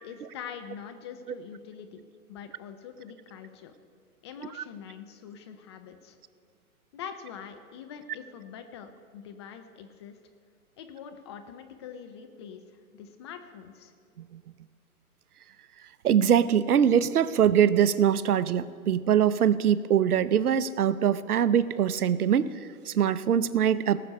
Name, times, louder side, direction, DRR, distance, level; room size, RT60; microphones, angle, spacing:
voice 1, 0.0-2.0 2.3-3.7 4.2-6.2 6.9-10.2 10.8-12.6 12.9-13.9, left 7 dB, 20° left, 7 dB, 0.4 m, -44 dB
voice 2, 16.0-22.5 22.9-24.0, right 9 dB, 85° right, 16 dB, 0.7 m, -23 dB
18.5 x 6.8 x 5.2 m, 2.2 s
hypercardioid pair, 125°, 44 cm